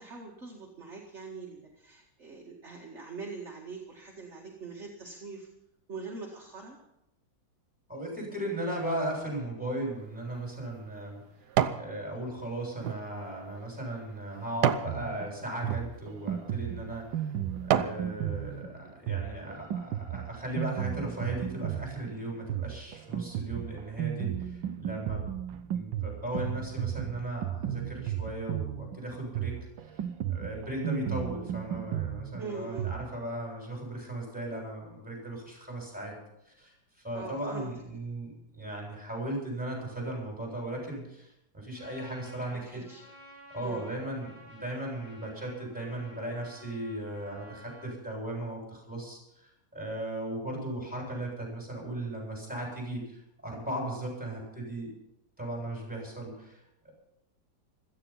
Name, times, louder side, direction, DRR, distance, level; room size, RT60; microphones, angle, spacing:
voice 1, 0.0-5.5 5.9-6.8 32.4-32.9 37.1-37.7 42.5-43.0 43.6-43.8, right 4 dB, 40° right, -1 dB, 2.3 m, -42 dB
voice 2, 7.9-11.2 11.7-17.4 17.7-25.2 25.7-30.0 30.3-36.2 36.4-36.7 37.0-42.8 43.5-54.9 55.4-56.9, right 1 dB, 5° right, -1 dB, 7.7 m, -37 dB
sound 1, 10.0-11.9 12.4-15.0 15.6-15.8 16.5-16.7 17.2-18.0 18.5-18.6, right 9 dB, 65° right, 1.3 m, -31 dB
Drum kit, 14.9-33.1, right 10 dB, 85° right, 1.5 m, -35 dB
Trumpet, 41.8-48.0, equal, 60° left, 6.1 m, -53 dB
16.5 x 14.0 x 5.6 m, 0.84 s
omnidirectional pair, 2.0 m